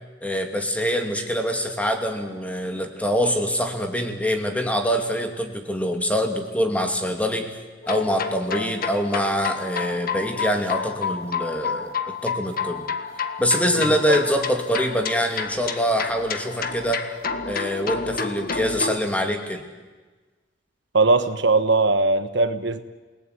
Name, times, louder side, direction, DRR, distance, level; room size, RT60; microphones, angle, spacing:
voice 1, 0.2-7.5 7.9-12.9 13.4-17.1 17.4-19.6, equal, 10° left, 4 dB, 2.7 m, -24 dB
sound 1, 7.8-19.0, left 5 dB, 50° left, 1.7 m, -30 dB
voice 2, 20.9-22.8, right 3 dB, 65° right, 10 dB, 1.3 m, -19 dB
28.5 x 19.0 x 9.7 m, 1.3 s
head